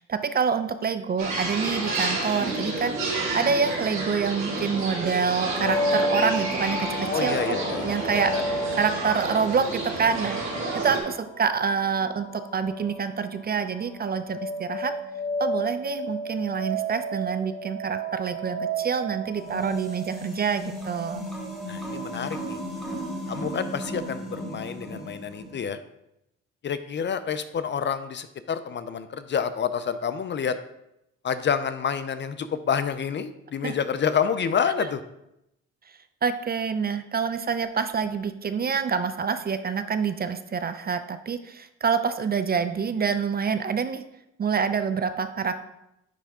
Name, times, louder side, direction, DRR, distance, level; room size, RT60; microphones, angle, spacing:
voice 1, 0.0-7.6 7.8-8.3 8.8-10.4 10.7-14.9 15.4-21.3 33.6-33.8 36.2-44.0 44.4-45.5, right 6 dB, 30° right, 10 dB, 0.4 m, -27 dB
sound 1, 1.2-11.0, right 2 dB, 70° right, 2.6 m, -30 dB
sound 2, 5.4-21.0, right 1 dB, 55° left, 2.5 m, -32 dB
voice 2, 7.1-8.1 8.3-8.4 21.7-22.6 23.3-25.8 26.6-30.6 31.2-35.0, left 7 dB, 40° left, 12 dB, 0.4 m, -28 dB
sound 3, 19.3-25.6, right 1 dB, ahead, 1.5 m, -35 dB
10.0 x 3.4 x 3.6 m, 0.85 s
cardioid pair, 90°, 30 cm